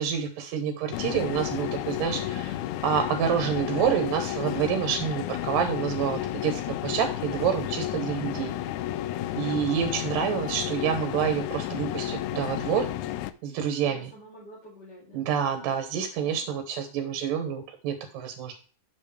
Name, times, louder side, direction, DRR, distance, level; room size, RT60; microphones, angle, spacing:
voice 1, 0.0-8.5 9.4-12.9 13.4-14.1 15.1-18.6, right 8 dB, 75° right, 6 dB, 2.5 m, -28 dB
sound 1, 0.9-13.3, left 13 dB, 85° left, 1.7 m, -32 dB
voice 2, 7.9-8.2 9.3-9.5 13.8-15.3, right 1 dB, 30° left, -7 dB, 3.0 m, -49 dB
8.0 x 7.2 x 3.3 m, 0.39 s
omnidirectional pair, 4.0 m